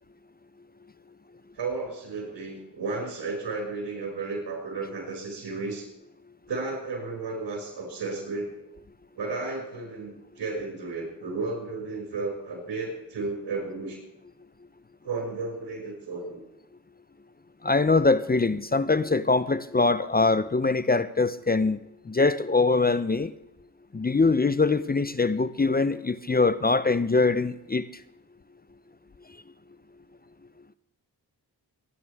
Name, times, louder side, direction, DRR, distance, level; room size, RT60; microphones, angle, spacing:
voice 1, 1.6-5.9 6.5-8.5 9.1-14.0 15.0-16.4, right 3 dB, 80° right, 6.3 m, -33 dB
voice 2, 17.6-21.8 22.1-23.3 23.9-27.9, left 3 dB, 20° left, 0.6 m, -23 dB
25.0 x 11.0 x 3.6 m
cardioid pair, 50°, 41 cm